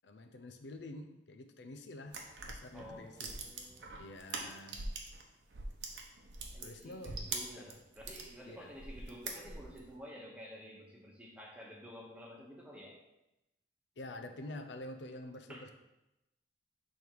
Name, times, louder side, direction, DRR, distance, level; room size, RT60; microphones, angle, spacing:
voice 1, 0.0-3.4 4.0-4.8 6.6-7.2 7.5-7.8 8.4-8.7 14.0-15.7, left 1 dB, 80° left, 7 dB, 0.5 m, -48 dB
sound 1, 2.1-5.2 5.5-8.3 8.7-9.8, right 3 dB, 85° right, 0.9 m, -43 dB
voice 2, 2.7-4.0 6.5-13.0 15.5-15.6, equal, 5° right, -2 dB, 1.1 m, -51 dB
6.3 x 3.5 x 4.6 m, 0.93 s
head